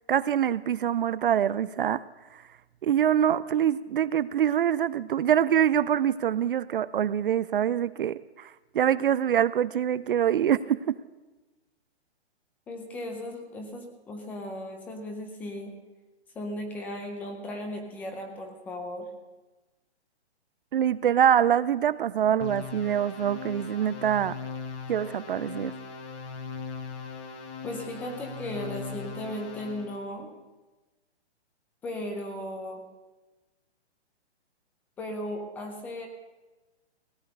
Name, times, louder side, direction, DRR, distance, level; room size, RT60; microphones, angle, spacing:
voice 1, 0.1-2.0 2.8-11.0 20.7-24.4 24.9-25.7, right 9 dB, 50° right, 17 dB, 0.4 m, -25 dB
voice 2, 12.7-15.7 16.3-19.1 27.6-30.3 31.8-32.8 35.0-36.1, left 1 dB, 5° left, 4 dB, 0.5 m, -36 dB
sound 1, 22.4-30.0, left 5 dB, 25° left, 1.4 m, -39 dB
17.0 x 8.9 x 6.6 m, 1.2 s
hypercardioid pair, 155°, 34 cm